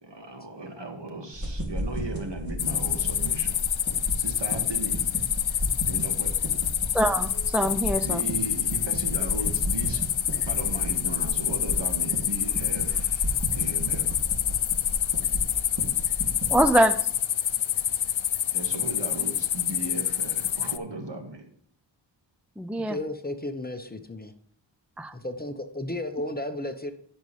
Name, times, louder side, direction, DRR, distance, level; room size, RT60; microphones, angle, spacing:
voice 1, 0.0-3.6 4.2-5.0 5.9-6.3 8.0-10.0 10.4-14.1 18.5-21.5, right 2 dB, 65° right, 3 dB, 1.9 m, -36 dB
sound 1, 1.3-16.7, equal, 40° right, 2.8 m, -34 dB
sound 2, 2.6-20.8, left 10 dB, 90° left, 0.6 m, -27 dB
voice 2, 6.9-8.2 16.5-16.9 22.6-23.0 25.0-25.1, right 1 dB, 5° right, 11 dB, 0.4 m, -23 dB
voice 3, 22.8-24.3 25.1-26.9, left 1 dB, 20° left, 7 dB, 0.8 m, -33 dB
16.0 x 5.4 x 3.2 m, 0.62 s
wide cardioid pair, 75°, 45 cm